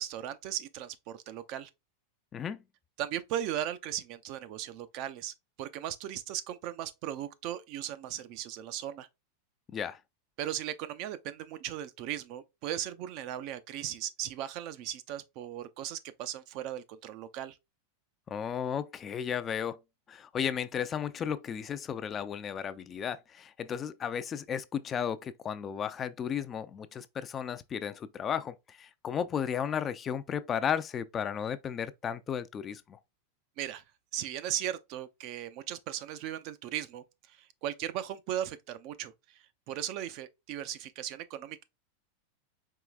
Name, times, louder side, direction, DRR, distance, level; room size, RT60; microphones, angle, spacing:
voice 1, 0.0-1.7 3.0-9.1 10.4-17.6 33.6-33.8 34.1-41.6, right 11 dB, 50° right, 0.5 m, -37 dB
voice 2, 18.3-19.8 20.1-33.0, left 8 dB, 25° left, 0.4 m, -34 dB
4.7 x 3.1 x 2.4 m
hypercardioid pair, 120°, 0 cm